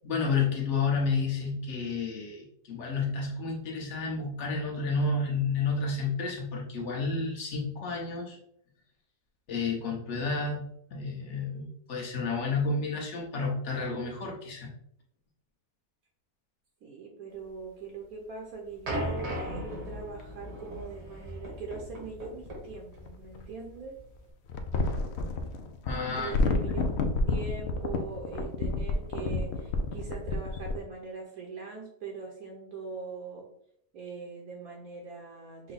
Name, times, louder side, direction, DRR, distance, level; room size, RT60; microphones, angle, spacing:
voice 1, 0.0-8.4 9.5-14.7 25.8-26.3, left 4 dB, 50° left, -1 dB, 1.3 m, -31 dB
voice 2, 16.8-24.0 26.2-33.5 33.9-35.7, right 4 dB, 65° right, 0 dB, 1.2 m, -41 dB
sound 1, 18.9-24.3, equal, 90° right, 2.1 m, -37 dB
sound 2, 20.2-20.3 22.5-23.6 24.5-30.8, left 3 dB, 75° left, 0.6 m, -30 dB
5.7 x 2.3 x 4.0 m, 0.69 s
omnidirectional pair, 1.7 m